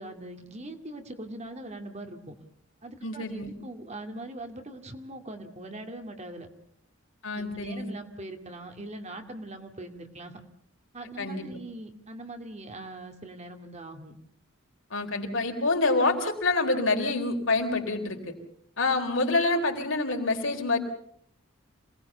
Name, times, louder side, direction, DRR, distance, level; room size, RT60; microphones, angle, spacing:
voice 1, 0.0-2.4 2.8-6.5 7.3-10.4 10.9-14.2, right 1 dB, 35° right, 5 dB, 2.4 m, -41 dB
voice 2, 3.0-3.5 7.2-7.9 11.2-11.5 14.9-18.3 18.8-20.8, left 3 dB, 70° left, 3 dB, 4.1 m, -27 dB
27.0 x 19.0 x 6.8 m, 0.68 s
head